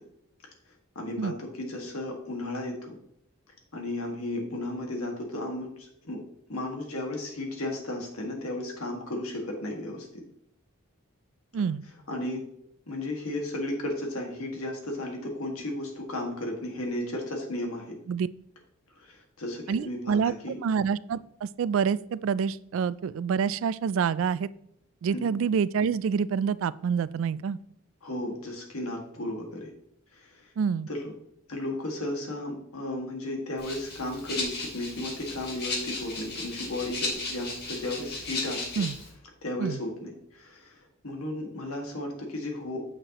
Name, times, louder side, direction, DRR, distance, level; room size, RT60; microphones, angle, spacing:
voice 1, 1.0-3.0 3.7-5.7 6.0-6.2 6.5-10.2 12.1-12.4 12.9-18.0 19.0-20.6 25.1-25.3 28.0-29.7 30.1-30.3 30.9-31.1 31.5-38.8 39.4-40.8 41.0-42.8, left 1 dB, 85° left, 1 dB, 1.8 m, -34 dB
voice 2, 19.7-20.4 20.6-24.5 25.0-27.6 30.6-30.9 38.8-39.0 39.6-39.8, right 6 dB, 65° right, 18 dB, 0.3 m, -27 dB
Rattle (instrument), 33.6-39.1, left 3 dB, 50° left, 2.1 m, -35 dB
8.8 x 6.6 x 2.9 m, 0.72 s
head